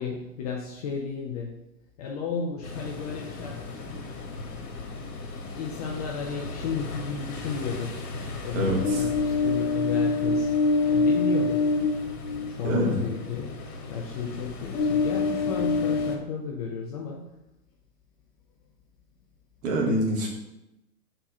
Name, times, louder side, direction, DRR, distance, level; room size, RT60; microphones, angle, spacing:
voice 1, 0.0-1.6 2.0-4.1 5.6-8.0 8.4-10.5 10.8-11.7 12.5-17.3, left 5 dB, 25° left, 0 dB, 0.5 m, -33 dB
Ocean, 2.6-16.2, left 3 dB, 65° left, 1.6 m, -28 dB
voice 2, 8.5-9.0 12.6-13.0 19.6-20.3, right 1 dB, 50° right, -1 dB, 2.2 m, -25 dB
4.5 x 4.3 x 5.6 m, 0.92 s
hypercardioid pair, 125°, 49 cm